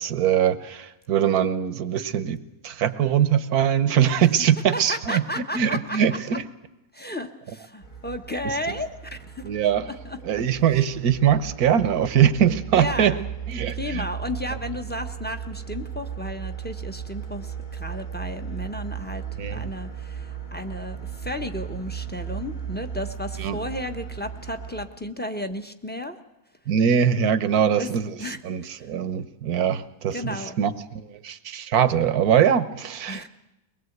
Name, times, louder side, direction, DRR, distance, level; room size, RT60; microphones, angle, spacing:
voice 1, 0.0-5.2 5.5-6.4 9.4-9.9 10.2-13.2 13.5-14.0 19.4-19.6 23.4-23.6 26.7-28.2 28.4-33.3, right 9 dB, 75° right, 13 dB, 1.5 m, -22 dB
voice 2, 4.7-6.0 6.9-9.4 9.9-10.2 12.7-13.2 13.7-26.2 27.8-27.9 28.2-28.4 30.1-30.6 33.1-33.3, left 1 dB, 10° left, 7 dB, 0.9 m, -33 dB
sound 1, 7.8-24.9, right 8 dB, 80° left, 3.5 m, -36 dB
23.0 x 20.5 x 8.0 m, 0.95 s
omnidirectional pair, 1.6 m